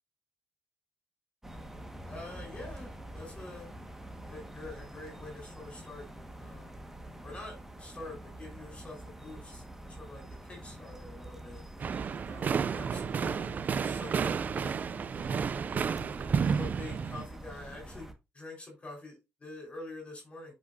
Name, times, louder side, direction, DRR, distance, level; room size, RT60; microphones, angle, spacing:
sound 1, 1.4-18.1, right 1 dB, 10° right, 1.5 m, -46 dB
voice 1, 2.0-3.7 4.2-6.1 6.4-6.8 7.2-11.6 12.2-15.9 16.5-20.5, left 2 dB, 30° left, 4.3 m, -46 dB
sound 2, 11.8-17.3, right 6 dB, 40° right, 0.4 m, -31 dB
9.9 x 5.7 x 2.6 m
cardioid pair, 100°, 5 cm